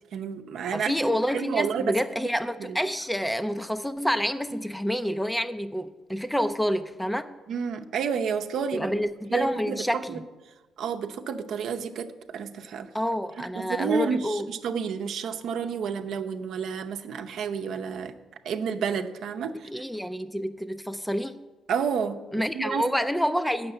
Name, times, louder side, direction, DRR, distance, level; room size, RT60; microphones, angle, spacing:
voice 1, 0.1-0.9 1.3-2.0 2.7-2.8 7.5-8.9 9.3-10.2 10.8-12.9 13.4-18.1 18.4-19.8 21.7-22.9, right 6 dB, 75° right, 5 dB, 0.7 m, -30 dB
voice 2, 0.7-7.3 8.7-10.2 12.9-14.5 19.7-21.4 22.3-23.7, equal, 5° left, 10 dB, 0.5 m, -28 dB
8.5 x 6.6 x 7.9 m, 1.2 s
cardioid pair, 90°, 0 cm